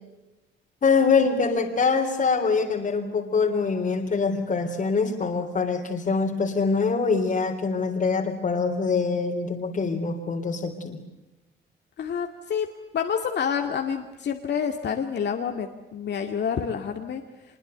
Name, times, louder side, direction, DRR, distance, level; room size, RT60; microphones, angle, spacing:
voice 1, 0.8-11.0, left 4 dB, 40° left, 2 dB, 3.5 m, -24 dB
voice 2, 12.0-12.7 12.9-17.2, left 7 dB, 60° left, 5 dB, 2.2 m, -28 dB
24.5 x 22.0 x 8.0 m, 1.0 s
cardioid pair, 90°, 20 cm